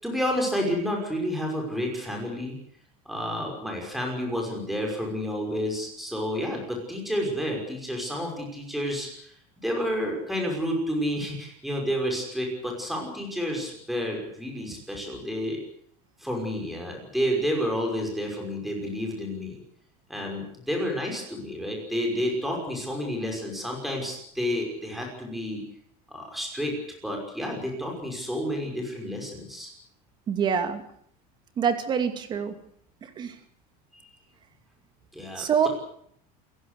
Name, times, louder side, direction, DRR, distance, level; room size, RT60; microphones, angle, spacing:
voice 1, 0.0-2.6 3.1-15.6 16.2-19.6 20.1-25.6 26.1-26.8 27.0-29.7 35.1-35.7, equal, ahead, 1 dB, 5.9 m, -30 dB
voice 2, 30.3-30.8 31.6-32.5 33.0-33.3 35.4-35.7, right 7 dB, 25° right, 9 dB, 2.6 m, -25 dB
29.0 x 16.0 x 8.3 m, 0.67 s
cardioid pair, 180°, 19 cm